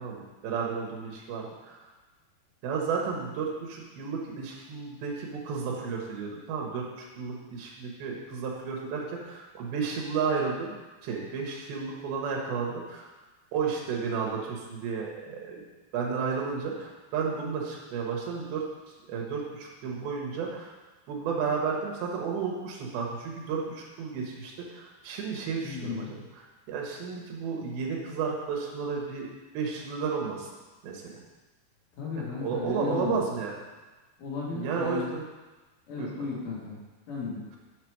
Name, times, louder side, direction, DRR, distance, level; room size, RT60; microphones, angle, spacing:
voice 1, 0.0-1.9 2.6-10.8 11.0-13.1 13.5-15.6 15.9-18.7 19.1-20.7 21.1-26.1 26.4-29.3 29.5-30.5 30.8-31.2 32.2-33.5 34.5-35.3 36.0-36.3, right 5 dB, 75° right, -1 dB, 2.9 m, -32 dB
voice 2, 25.6-26.1 32.0-33.2 34.2-35.1 35.9-36.8 37.1-37.4, left 4 dB, 60° left, -6 dB, 3.0 m, -34 dB
6.7 x 5.0 x 4.6 m, 1.2 s
omnidirectional pair, 4.6 m